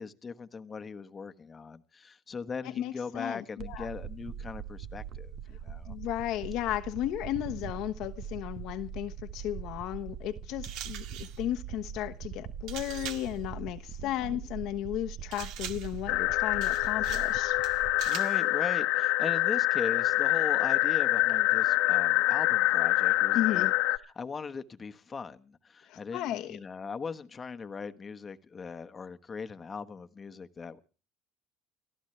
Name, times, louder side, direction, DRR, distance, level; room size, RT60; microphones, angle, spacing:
voice 1, 0.0-6.0 14.0-14.5 18.0-23.7 24.0-30.8, left 5 dB, 25° left, 1.3 m, -39 dB
voice 2, 2.8-3.9 5.9-17.6 23.3-23.7 25.9-26.6, left 13 dB, 65° left, 1.2 m, -34 dB
sound 1, 3.6-18.1, right 8 dB, 50° right, 1.2 m, -42 dB
sound 2, 10.6-11.4 12.7-13.4 15.3-16.0 16.6-17.4 17.6-18.4, right 11 dB, 70° right, 1.8 m, -42 dB
sound 3, 16.1-24.0, left 18 dB, 80° left, 1.4 m, -26 dB
30.0 x 14.5 x 3.3 m
cardioid pair, 125°, 0 cm